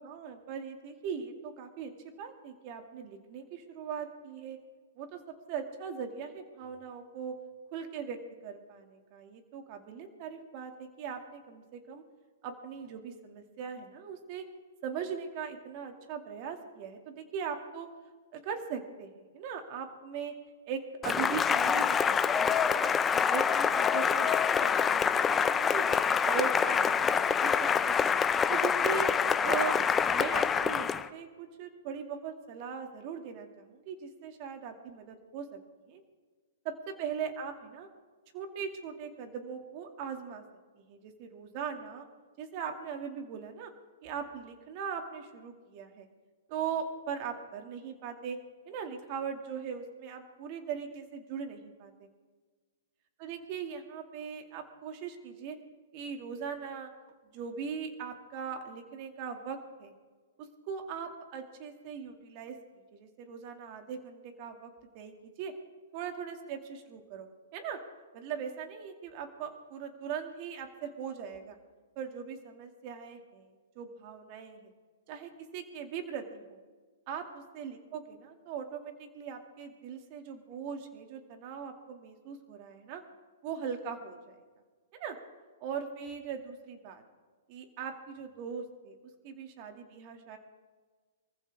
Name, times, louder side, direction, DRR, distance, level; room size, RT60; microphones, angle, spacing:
voice 1, 0.0-1.9 2.2-4.6 5.0-5.2 5.5-7.3 7.7-8.2 8.4-12.0 12.4-14.4 14.8-17.9 18.3-20.3 20.7-22.9 23.3-25.9 26.2-28.1 28.5-29.1 29.4-29.8 30.1-35.6 35.9-36.0 36.6-37.9 38.3-40.4 40.9-42.0 42.4-43.7 44.0-46.1 46.5-48.4 48.7-52.1 53.2-55.6 55.9-56.9 57.3-59.9 60.7-62.6 62.9-65.5 65.9-67.8 68.1-71.6 72.0-74.7 75.1-76.6 77.1-83.0 83.4-84.3 85.0-85.2 85.6-87.0 87.5-89.0 89.2-90.4, right 7 dB, 40° right, 5 dB, 2.3 m, -40 dB
Cheering / Applause, 21.0-31.1, left 7 dB, 15° left, 0.6 m, -26 dB
24.5 x 15.0 x 3.6 m, 1.4 s
hypercardioid pair, 135°, 0 cm